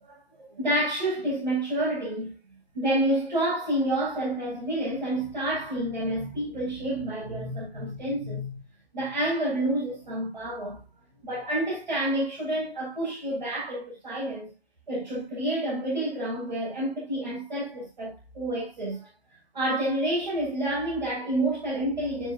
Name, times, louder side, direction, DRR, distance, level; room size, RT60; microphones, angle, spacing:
voice 1, 0.5-2.3 2.7-8.6 8.9-10.8 11.2-14.5 14.9-19.1 19.5-22.3, right 1 dB, 50° right, 7.9 m, -29 dB
11.5 x 9.1 x 2.7 m
hypercardioid pair, 170°, 31 cm